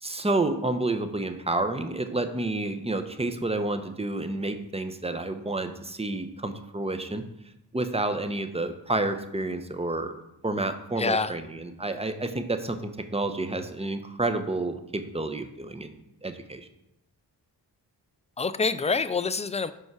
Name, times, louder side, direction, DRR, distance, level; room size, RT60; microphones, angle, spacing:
voice 1, 0.0-7.2 7.7-16.7, right 2 dB, 15° right, 8 dB, 0.7 m, -30 dB
voice 2, 11.0-11.3 18.4-19.7, left 4 dB, 15° left, 14 dB, 0.3 m, -26 dB
5.4 x 4.6 x 4.7 m, 0.86 s
cardioid pair, 45°, 43 cm